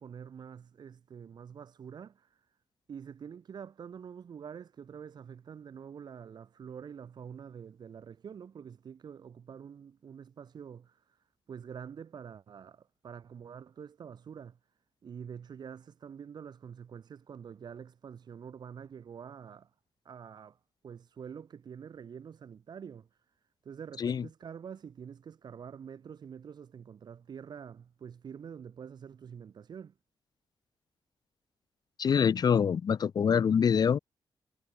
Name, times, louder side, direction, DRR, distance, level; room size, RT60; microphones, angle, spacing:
voice 1, 0.0-2.5 2.9-14.6 15.0-19.7 20.0-20.6 20.8-23.1 23.6-29.9, right 7 dB, 55° right, 5.4 m, -46 dB
voice 2, 32.0-34.0, left 7 dB, 50° left, 1.7 m, -25 dB
wide cardioid pair, 160°, 9 cm